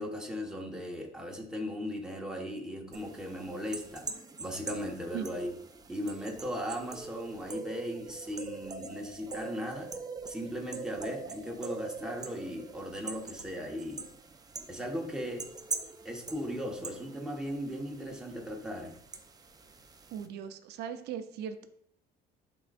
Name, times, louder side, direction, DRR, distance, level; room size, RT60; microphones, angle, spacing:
voice 1, 0.0-4.1 4.4-5.5 5.9-9.9 10.3-14.1 14.7-15.5 16.0-18.9, equal, 5° right, 0 dB, 1.3 m, -37 dB
sound 1, 2.9-20.3, right 4 dB, 20° right, 0.6 m, -43 dB
voice 2, 20.1-21.7, right 8 dB, 75° right, 8 dB, 0.7 m, -38 dB
11.5 x 3.9 x 2.5 m, 0.69 s
cardioid pair, 110°, 17 cm